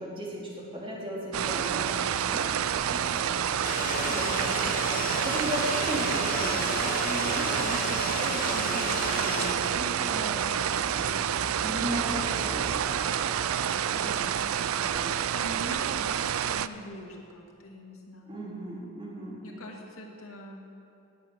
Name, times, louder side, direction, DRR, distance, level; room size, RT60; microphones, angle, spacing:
voice 1, 0.0-3.5 4.1-4.7 5.1-10.5 10.8-11.2 11.6-12.7 13.2-13.4 18.3-19.4, equal, 25° right, -4 dB, 2.7 m, -36 dB
sound 1, 1.3-16.7, right 9 dB, 85° right, 0.4 m, -28 dB
sound 2, 1.4-15.3, equal, ahead, 1.4 m, -45 dB
sound 3, 3.6-9.5, left 4 dB, 40° left, 1.2 m, -34 dB
voice 2, 4.0-4.8 13.9-18.4 19.4-20.7, left 1 dB, 90° left, 0 dB, 2.2 m, -44 dB
18.0 x 8.3 x 6.3 m, 2.7 s
head